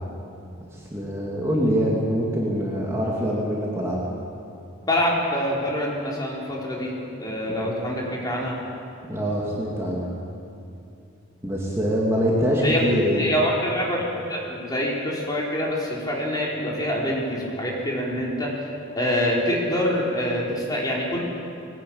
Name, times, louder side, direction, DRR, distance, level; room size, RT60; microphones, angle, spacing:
voice 1, 0.9-4.0 7.5-7.6 9.1-10.1 11.4-13.3, equal, 15° right, -4 dB, 2.5 m, -24 dB
voice 2, 4.9-6.9 7.2-8.6 12.6-12.8 13.2-18.7 18.9-21.2, equal, 20° left, -3 dB, 3.9 m, -25 dB
20.0 x 18.5 x 8.8 m, 2.6 s
head